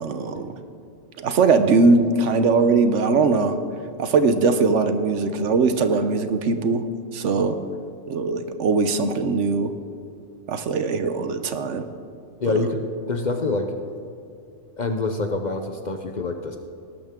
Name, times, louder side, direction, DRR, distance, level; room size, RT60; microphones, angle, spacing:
voice 1, 0.0-0.5 1.2-3.6 4.0-6.8 7.1-7.6 8.1-9.7 10.5-11.8 12.5-12.6, right 4 dB, 70° right, 9 dB, 1.1 m, -20 dB
voice 2, 12.4-13.8 14.8-16.6, left 3 dB, 45° left, 5 dB, 0.7 m, -26 dB
18.0 x 12.0 x 3.6 m, 2.4 s
omnidirectional pair, 1.3 m